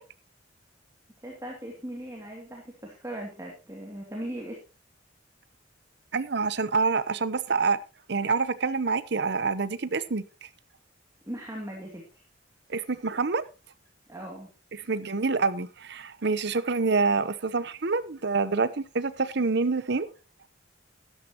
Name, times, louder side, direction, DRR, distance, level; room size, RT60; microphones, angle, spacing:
voice 1, 1.2-4.6 11.3-12.2 14.1-14.5, right 1 dB, 15° right, 2.6 m, -38 dB
voice 2, 6.1-7.8 8.1-10.2 12.7-13.4 14.7-20.1, right 4 dB, 60° right, 0.8 m, -27 dB
13.5 x 12.0 x 3.0 m
head